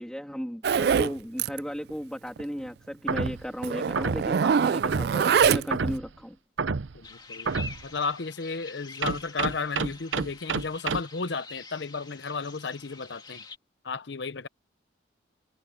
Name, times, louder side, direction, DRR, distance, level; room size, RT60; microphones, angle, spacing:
voice 1, 0.0-6.4, equal, 5° left, 2.8 m, -35 dB
Zipper (clothing), 0.6-1.1 1.4-1.6 1.9-2.0 2.4-2.5 3.2-3.3 3.6-5.9, right 6 dB, 55° right, 0.3 m, -24 dB
sound 1, 3.1-3.5 3.9-4.3 4.8-5.2 5.7-6.1 6.6-7.0 7.5-7.8 9.0-11.0, right 4 dB, 80° right, 0.7 m, -29 dB
voice 2, 6.9-13.4 13.8-14.5, left 4 dB, 65° left, 0.8 m, -33 dB
sound 2, 7.0-13.6, left 4 dB, 20° left, 2.3 m, -46 dB
head